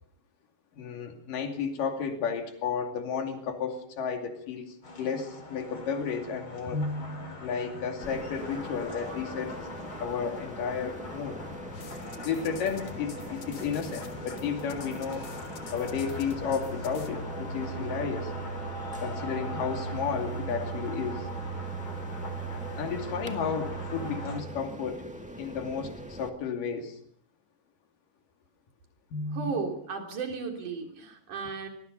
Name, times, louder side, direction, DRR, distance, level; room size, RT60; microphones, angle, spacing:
voice 1, 0.8-9.6 10.0-11.4 12.2-15.3 15.7-18.3 19.0-21.3 22.7-25.1 25.4-27.0 29.1-29.5, left 6 dB, 75° left, 5 dB, 4.2 m, -32 dB
sound 1, 4.8-24.4, right 1 dB, 35° left, 5.4 m, -39 dB
sound 2, 8.0-26.3, equal, 5° right, 0.9 m, -43 dB
sound 3, 11.7-17.1, left 5 dB, 55° left, 2.7 m, -48 dB
voice 2, 29.3-31.7, right 5 dB, 65° right, 3 dB, 4.7 m, -34 dB
23.0 x 20.5 x 5.5 m, 0.63 s
omnidirectional pair, 3.9 m